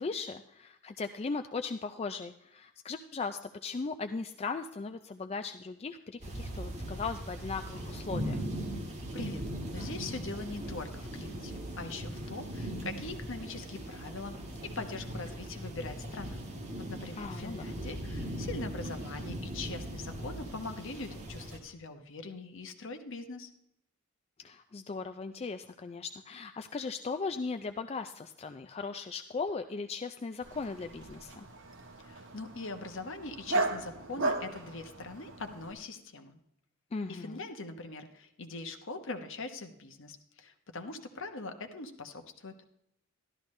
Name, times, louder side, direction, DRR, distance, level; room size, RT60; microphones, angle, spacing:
voice 1, 0.0-8.4 17.1-17.7 24.4-31.5 36.9-37.4, left 4 dB, 30° left, 8 dB, 0.4 m, -38 dB
sound 1, 6.2-21.6, right 1 dB, 30° right, 1.7 m, -39 dB
voice 2, 9.7-14.4 14.6-16.4 16.9-23.5 32.0-36.4 37.1-42.5, left 3 dB, 60° left, 6 dB, 1.1 m, -42 dB
Dog, 30.4-35.7, right 2 dB, 60° right, 1.3 m, -36 dB
12.5 x 12.0 x 3.2 m, 0.81 s
head